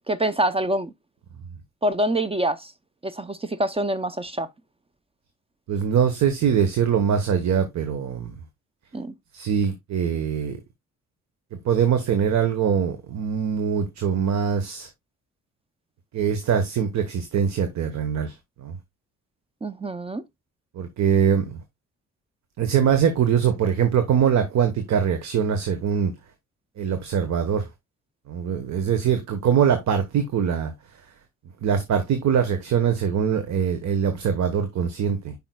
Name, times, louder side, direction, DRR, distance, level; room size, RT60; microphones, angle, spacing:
voice 1, 0.1-0.9 1.8-2.7 3.0-4.5 8.9-9.2 19.6-20.2, right 1 dB, 20° right, 0.7 m, -25 dB
voice 2, 5.7-8.4 9.3-10.6 11.5-14.9 16.1-18.3 18.6-18.8 20.7-21.6 22.6-26.1 26.8-27.7 28.3-30.7 31.6-35.3, right 7 dB, 65° right, 1.2 m, -23 dB
9.2 x 5.5 x 2.3 m
cardioid pair, 90°, 30 cm